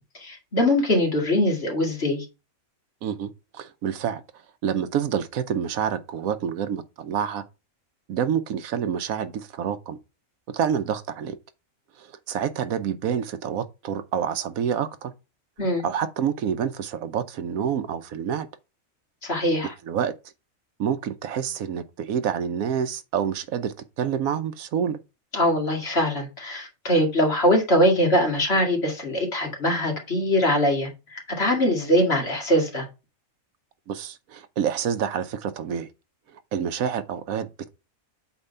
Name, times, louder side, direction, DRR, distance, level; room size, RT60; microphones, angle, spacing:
voice 1, 0.1-2.2 15.6-15.8 19.2-19.7 25.3-32.9, equal, 45° left, 2.4 m, -22 dB
voice 2, 3.0-4.2 4.6-7.4 8.1-10.0 10.5-11.4 12.0-15.1 15.8-18.5 19.6-20.1 20.8-25.0 33.9-35.9 36.3-37.7, right 8 dB, 80° right, 1.2 m, -28 dB
8.2 x 3.4 x 5.5 m
omnidirectional pair, 1.5 m